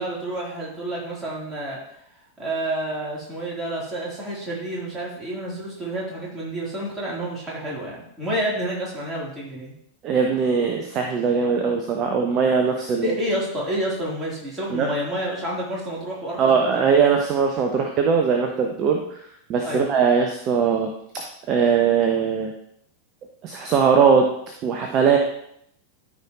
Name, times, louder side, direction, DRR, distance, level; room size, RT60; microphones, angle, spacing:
voice 1, 0.0-1.8 2.4-9.7 13.0-16.9 19.6-19.9, right 1 dB, 15° right, -5 dB, 3.5 m, -29 dB
voice 2, 10.0-13.1 14.7-14.9 16.4-19.2 19.5-22.5 23.4-24.3 24.6-25.2, right 6 dB, 35° right, 3 dB, 1.0 m, -20 dB
13.5 x 5.0 x 3.1 m, 0.72 s
figure-of-eight pair, 90°, 0 cm